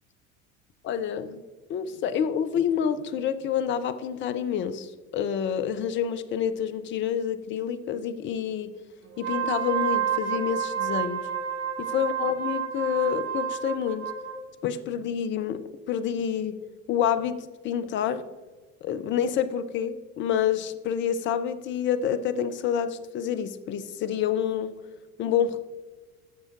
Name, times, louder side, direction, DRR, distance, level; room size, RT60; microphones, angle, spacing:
voice 1, 0.8-1.4 1.7-8.7 9.2-11.3 11.8-14.1 14.6-15.6 15.9-16.6 16.9-18.2 18.8-24.8 25.2-25.6, left 8 dB, 30° left, 11 dB, 0.4 m, -28 dB
Wind instrument woodwind instrument, 9.1-14.4, right 8 dB, 35° right, 1.4 m, -29 dB
12.5 x 6.2 x 2.4 m, 1.3 s
figure-of-eight pair, 70°, 42 cm